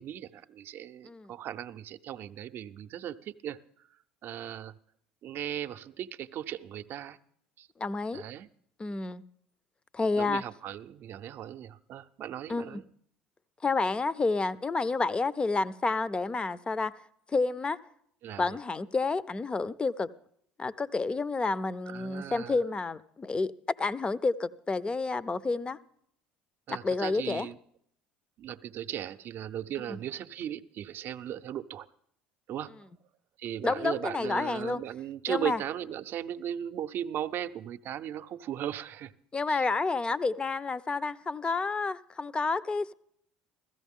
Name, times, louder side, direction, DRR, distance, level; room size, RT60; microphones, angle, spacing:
voice 1, 0.0-3.6 4.2-4.7 5.2-7.2 7.6-7.7 8.1-8.5 10.2-12.8 18.2-18.5 21.9-22.6 26.7-27.6 28.4-31.9 32.5-32.9 33.4-39.1 39.5-39.6, right 10 dB, 55° right, 0.6 m, -37 dB
voice 2, 7.8-8.2 8.8-9.2 9.9-10.4 12.5-12.8 13.6-16.9 17.3-17.8 18.4-20.1 20.6-23.5 23.8-25.8 26.7-27.5 29.9-30.0 33.6-34.8 35.3-35.6 39.3-42.9, left 3 dB, 20° left, 0.5 m, -30 dB
15.5 x 14.0 x 3.6 m
hypercardioid pair, 80°, 5 cm